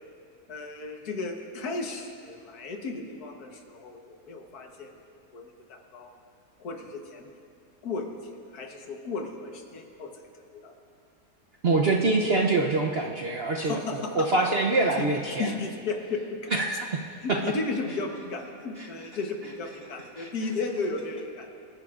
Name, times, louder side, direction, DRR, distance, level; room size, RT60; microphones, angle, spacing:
voice 1, 0.5-6.1 6.6-7.3 7.8-10.8 13.6-14.5 14.7-15.0 15.4-16.6 17.2-21.5, left 3 dB, 65° left, 2 dB, 1.7 m, -35 dB
voice 2, 11.6-15.5 16.5-16.8 17.3-17.4 20.2-20.3, right 3 dB, 55° right, 0 dB, 0.7 m, -25 dB
25.5 x 10.5 x 2.4 m, 2.3 s
omnidirectional pair, 1.8 m